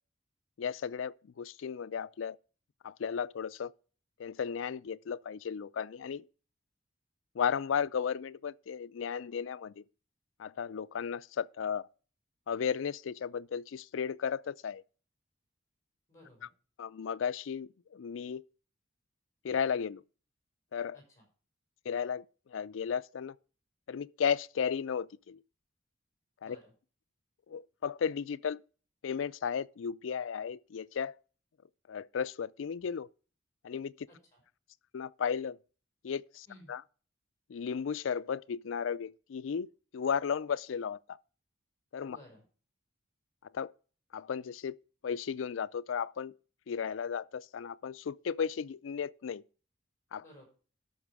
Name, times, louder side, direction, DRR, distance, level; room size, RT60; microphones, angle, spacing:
voice 1, 0.6-2.4 2.8-3.7 4.2-6.2 7.3-9.8 10.4-11.9 12.5-14.8 16.8-18.4 19.4-20.0 20.7-21.0 21.9-23.3 23.9-25.4 26.4-26.6 27.5-28.6 29.0-31.1 31.9-33.1 33.6-34.1 34.9-35.6 36.0-36.8 37.5-39.7 39.9-41.2 41.9-42.2 43.5-43.7 44.1-44.8 45.0-46.3 46.7-49.4 50.1-50.2, left 7 dB, 85° left, 0.4 m, -34 dB
voice 2, 16.1-16.5 20.9-21.2 26.4-26.7 34.1-34.4 36.5-36.7 42.0-42.4 50.2-50.5, left 1 dB, 15° left, 5.1 m, -56 dB
12.5 x 5.8 x 4.8 m
head